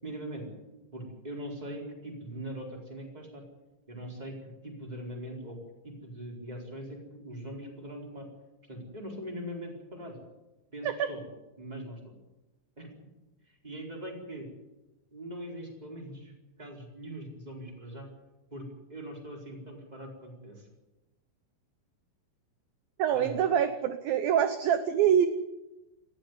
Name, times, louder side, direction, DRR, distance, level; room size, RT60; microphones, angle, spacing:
voice 1, 0.0-0.5 0.9-3.4 3.9-5.6 5.8-8.3 8.7-10.2 10.7-11.2 11.6-12.1 12.8-12.9 13.4-14.5 15.1-16.3 16.6-18.1 18.5-20.7 23.1-23.5, right 1 dB, 10° right, 1 dB, 4.1 m, -41 dB
voice 2, 23.0-25.3, right 9 dB, 75° right, 10 dB, 2.2 m, -25 dB
18.5 x 15.0 x 9.6 m, 1.0 s
omnidirectional pair, 5.3 m